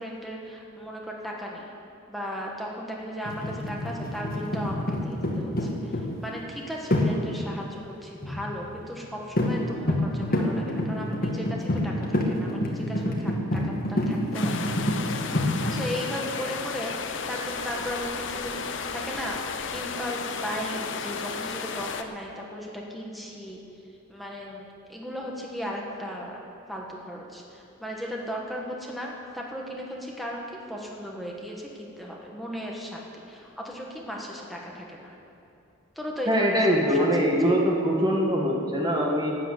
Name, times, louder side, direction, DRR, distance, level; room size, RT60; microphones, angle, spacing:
voice 1, 0.0-1.7 2.1-14.7 15.7-23.6 24.1-26.4 26.7-35.2 35.9-37.1 37.4-37.5, equal, ahead, -2 dB, 1.5 m, -36 dB
sound 1, 3.3-6.2 6.9-7.2 8.2-8.6 9.0-9.1 9.4-9.6 9.9-15.8, left 1 dB, 45° left, 1.7 m, -27 dB
sound 2, 14.3-22.0, left 5 dB, 60° left, 0.8 m, -33 dB
voice 2, 36.3-39.3, equal, 20° right, -1 dB, 1.9 m, -23 dB
12.5 x 9.8 x 8.2 m, 2.7 s
head